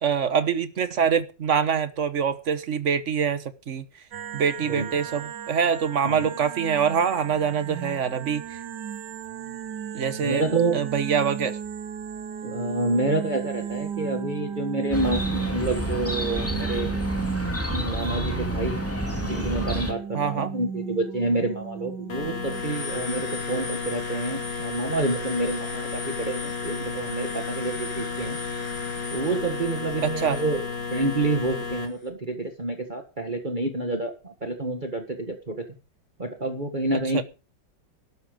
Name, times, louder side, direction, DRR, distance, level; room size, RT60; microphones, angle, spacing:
voice 1, 0.0-3.8 4.3-8.6 9.9-10.4 10.7-11.6 20.1-20.5 30.0-30.4 37.1-37.2, right 7 dB, 45° right, 1.4 m, -25 dB
sound 1, 4.1-22.6, right 7 dB, 70° right, 1.6 m, -35 dB
voice 2, 10.2-10.8 12.4-17.0 17.7-18.8 19.2-28.4 29.1-30.6 30.9-35.6 36.2-37.2, right 2 dB, 25° right, 1.7 m, -28 dB
Chirp tweet, 14.9-19.9, equal, 10° left, 2.4 m, -29 dB
sound 2, 22.1-31.9, left 5 dB, 70° left, 3.2 m, -32 dB
13.0 x 11.5 x 5.2 m
omnidirectional pair, 1.9 m